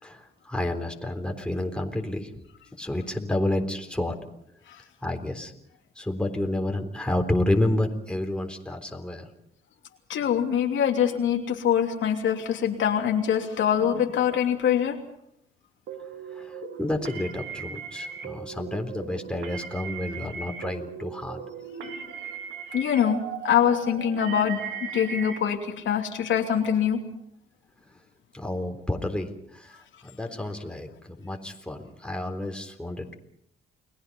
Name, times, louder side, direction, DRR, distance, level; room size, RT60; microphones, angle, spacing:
voice 1, 0.0-2.3 2.8-4.2 5.0-5.5 6.0-9.3 16.3-21.4 28.3-33.1, left 1 dB, 5° left, 3 dB, 3.7 m, -30 dB
voice 2, 10.1-15.0 21.8-22.0 22.7-24.6 24.9-27.0, left 8 dB, 75° left, 2 dB, 3.0 m, -24 dB
sound 1, 15.9-25.4, right 6 dB, 75° right, 2.8 m, -38 dB
30.0 x 20.5 x 5.4 m, 0.75 s
cardioid pair, 90°, 20 cm